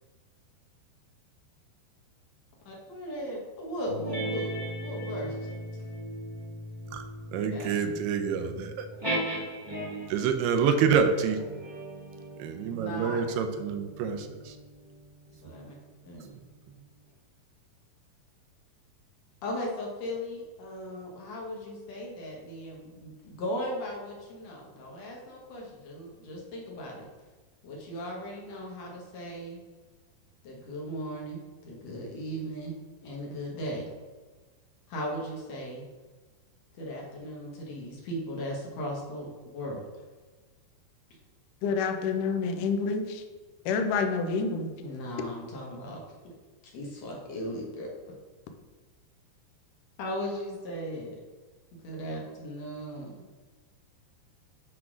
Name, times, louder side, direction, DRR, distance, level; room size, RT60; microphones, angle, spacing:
voice 1, 2.7-4.5 4.8-5.8 7.3-8.0 12.8-13.2 15.4-15.7 16.0-16.3 19.4-27.1 27.6-29.6 30.4-32.7 33.0-33.9 34.9-35.8 36.8-39.8 44.8-46.3 46.7-48.1 50.0-51.2 51.8-53.1, equal, 65° left, -2 dB, 1.7 m, -37 dB
sound 1, 3.8-10.2 11.0-15.9, right 1 dB, 30° right, 0.4 m, -38 dB
voice 2, 7.3-8.9 10.1-11.4 12.4-14.6, right 6 dB, 80° right, 6 dB, 2.6 m, -27 dB
voice 3, 41.6-43.2 43.7-44.7, left 5 dB, 90° left, 5 dB, 1.8 m, -28 dB
8.4 x 3.7 x 6.1 m, 1.3 s
omnidirectional pair, 4.8 m